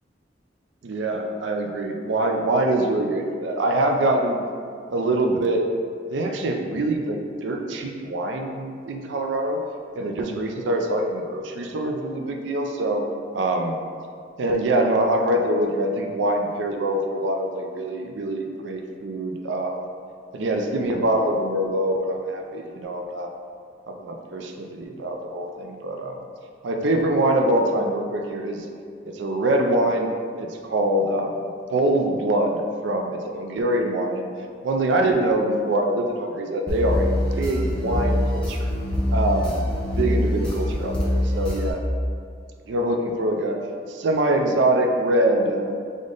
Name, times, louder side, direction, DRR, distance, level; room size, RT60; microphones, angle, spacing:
voice 1, 0.8-4.4 4.9-5.6 6.1-9.6 10.0-13.0 13.3-13.8 14.4-19.9 20.3-23.3 23.9-26.2 26.6-28.7 29.1-30.1 30.4-34.3 34.6-38.7 39.1-39.6 40.0-41.8 42.7-43.6 43.9-45.8, right 1 dB, 85° right, 3 dB, 0.4 m, -24 dB
sound 1, 36.7-41.7, left 1 dB, 5° left, 0.8 m, -24 dB
3.7 x 3.6 x 3.8 m, 2.3 s
head